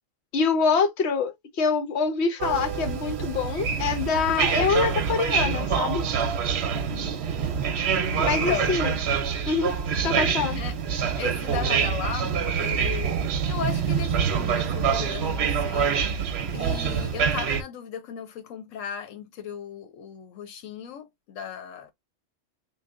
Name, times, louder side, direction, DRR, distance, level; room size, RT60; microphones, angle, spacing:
voice 1, 0.3-6.1 8.2-8.9 9.5-9.7 10.0-10.6, left 5 dB, 60° left, 1.0 m, -25 dB
sound 1, 2.4-17.6, right 6 dB, 65° right, 0.8 m, -26 dB
voice 2, 6.7-7.2 8.3-9.0 10.4-10.8 11.1-16.0 16.5-21.9, left 8 dB, 85° left, 1.0 m, -36 dB
3.1 x 2.3 x 3.5 m
omnidirectional pair, 1.3 m